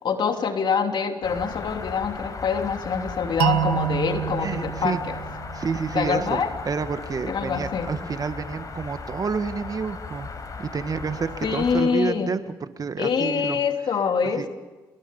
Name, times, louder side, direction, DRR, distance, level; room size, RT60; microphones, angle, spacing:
voice 1, 0.0-5.2 5.9-6.5 7.3-7.9 11.4-12.3 13.0-14.5, left 6 dB, 60° left, 5 dB, 3.2 m, -25 dB
sound 1, 1.2-11.8, left 4 dB, 45° left, 4.8 m, -37 dB
sound 2, 3.4-6.3, right 14 dB, 85° right, 1.3 m, -28 dB
voice 2, 4.4-5.0 5.5-10.3 10.6-13.9 14.4-14.5, right 5 dB, 45° right, 10 dB, 1.7 m, -29 dB
28.0 x 22.0 x 5.5 m, 1.2 s
supercardioid pair, 60°, 9 cm